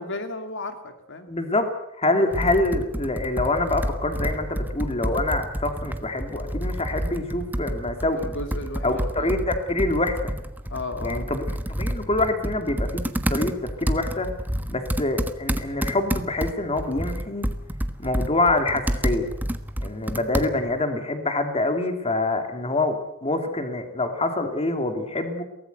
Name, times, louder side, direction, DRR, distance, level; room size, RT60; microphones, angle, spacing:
voice 1, 0.0-1.3 8.2-9.3 10.7-11.3, left 2 dB, 55° left, 7 dB, 2.5 m, -34 dB
voice 2, 1.3-1.7 2.0-8.4 8.8-10.3 11.0-13.0 13.3-14.3 14.7-17.5 18.0-19.3 19.8-23.0 23.2-25.4, left 2 dB, 25° left, 6 dB, 2.7 m, -25 dB
Computer keyboard, 2.3-20.8, equal, 10° right, 1.3 m, -29 dB
23.5 x 18.0 x 8.1 m, 0.84 s
head